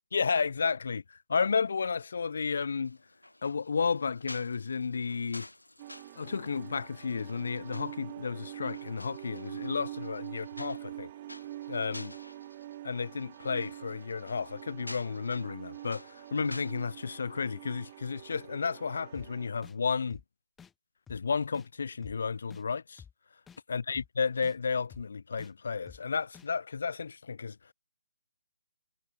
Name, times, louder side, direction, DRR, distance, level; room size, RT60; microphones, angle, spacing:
voice 1, 0.1-3.0 3.4-5.5 6.2-11.1 11.7-12.2 12.8-20.2 21.1-23.0 23.7-27.6, left 5 dB, 60° left, 0.4 m, -32 dB
sound 1, 2.8-17.1, left 1 dB, 85° left, 5.6 m, -52 dB
sound 2, 5.8-19.5, right 14 dB, 30° right, 0.5 m, -45 dB
sound 3, 19.1-19.3 19.6-19.8 20.1-20.2 20.6-20.7 21.1-21.2 21.5-21.7 22.0-22.2 22.5-22.6 23.0-23.1 23.5-23.6 23.9-24.1 24.4-24.6 24.9-25.0 25.4-25.5 25.9-26.0 26.3-26.5, left 7 dB, 10° left, 2.2 m, -51 dB
figure-of-eight pair, 145°, 0 cm